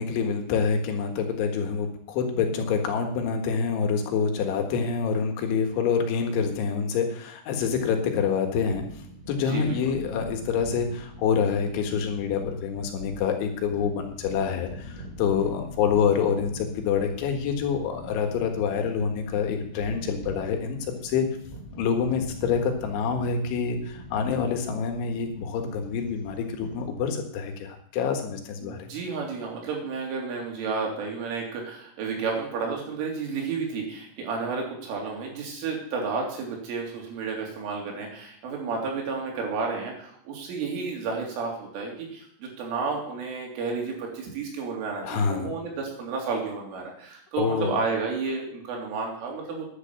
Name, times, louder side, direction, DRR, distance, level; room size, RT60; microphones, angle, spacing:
voice 1, 0.0-8.8 9.3-21.3 21.8-28.9 45.0-45.5 47.4-47.8, left 6 dB, 80° left, 4 dB, 4.0 m, -26 dB
sound 1, 8.4-26.9, equal, 15° left, 1.4 m, -43 dB
voice 2, 28.6-49.7, right 4 dB, 85° right, 0 dB, 5.7 m, -31 dB
11.0 x 9.8 x 7.2 m, 0.68 s
omnidirectional pair, 5.5 m